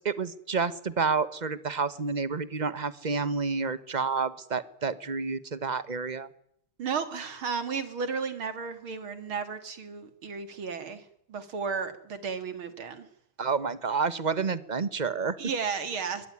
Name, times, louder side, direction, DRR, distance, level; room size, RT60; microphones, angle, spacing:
voice 1, 0.0-6.3 13.4-15.4, right 5 dB, 30° right, 15 dB, 0.8 m, -29 dB
voice 2, 6.8-13.1 15.4-16.3, right 5 dB, 70° right, 10 dB, 3.4 m, -33 dB
22.0 x 22.0 x 9.8 m, 0.71 s
omnidirectional pair, 2.3 m